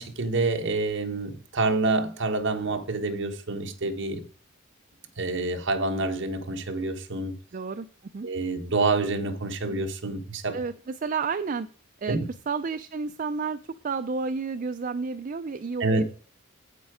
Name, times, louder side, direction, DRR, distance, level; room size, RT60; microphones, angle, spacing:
voice 1, 0.0-4.3 5.2-7.3 8.2-10.6 12.1-12.2 15.8-16.0, right 3 dB, 55° right, 1.2 m, -27 dB
voice 2, 7.5-8.3 10.5-11.7 12.0-12.2 12.5-16.0, right 5 dB, 40° right, 0.4 m, -31 dB
8.3 x 7.9 x 4.9 m
head